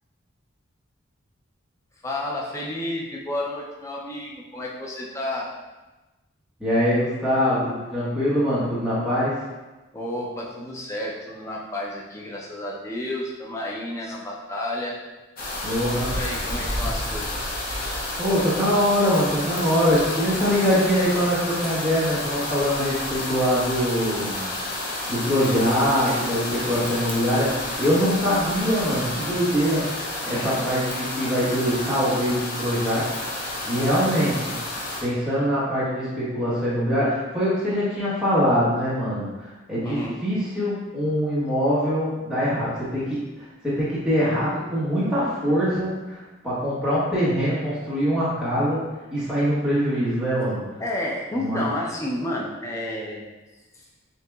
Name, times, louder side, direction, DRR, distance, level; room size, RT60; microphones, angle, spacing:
voice 1, 2.0-5.5 9.9-15.0 16.1-17.6 26.6-26.9 30.3-30.5 39.8-40.2 50.8-53.2, left 1 dB, 15° left, -3 dB, 0.4 m, -31 dB
voice 2, 6.6-9.3 15.6-16.1 18.2-24.5 25.1-29.8 30.3-33.1 33.7-34.6 35.0-48.8 49.1-50.6 51.3-51.6, equal, 5° right, -11 dB, 1.1 m, -23 dB
sound 1, 15.4-35.0, left 1 dB, 45° left, 0.8 m, -30 dB
6.4 x 2.9 x 2.3 m, 1.1 s
head